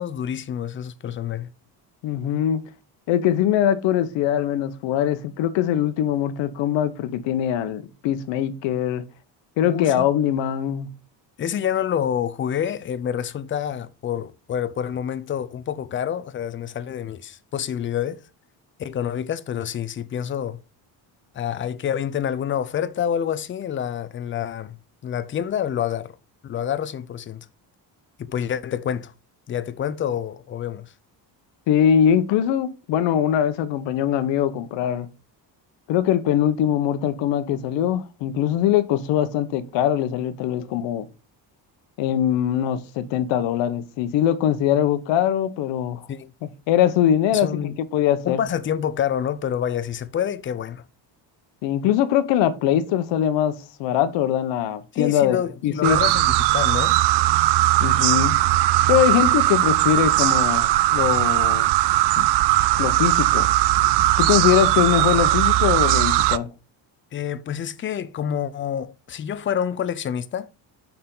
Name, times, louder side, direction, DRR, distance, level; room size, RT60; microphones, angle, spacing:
voice 1, 0.0-1.5 9.6-10.1 11.4-18.2 18.8-20.6 21.3-24.8 25.0-26.2 26.4-27.5 28.3-29.1 29.5-30.9 46.1-46.3 47.3-47.8 48.2-50.8 54.9-57.0 67.1-70.5, left 9 dB, 30° left, 0.4 m, -27 dB
voice 2, 2.0-2.6 3.1-9.0 9.6-10.9 31.7-35.1 35.9-41.1 42.0-46.0 46.4-48.4 51.6-55.4 55.6-56.0 57.8-58.4 58.9-61.7 62.2-62.3 62.7-63.5 64.2-66.5, left 10 dB, 85° left, 1.0 m, -22 dB
sound 1, 55.8-66.4, right 16 dB, 65° right, 0.5 m, -19 dB
6.8 x 5.6 x 3.7 m
cardioid pair, 155°, 43 cm